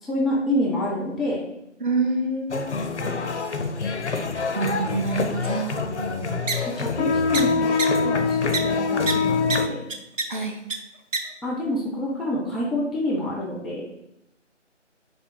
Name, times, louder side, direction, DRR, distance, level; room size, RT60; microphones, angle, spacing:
voice 1, 0.0-1.4 2.8-3.2 5.9-6.3 6.8-9.9 11.4-13.8, left 1 dB, ahead, -4 dB, 0.4 m, -28 dB
voice 2, 1.8-2.9 4.5-5.8 10.3-10.6, right 3 dB, 40° right, 2 dB, 0.7 m, -27 dB
sound 1, 2.5-9.7, left 4 dB, 65° left, 0.5 m, -25 dB
sound 2, 6.5-6.6 7.3-7.4 7.8-7.9 8.5-8.6 9.1-9.2 9.5-9.6 9.9-10.2 10.7-10.8 11.1-11.2, right 4 dB, 85° right, 0.7 m, -24 dB
4.2 x 2.6 x 4.4 m, 0.82 s
figure-of-eight pair, 165°, 37 cm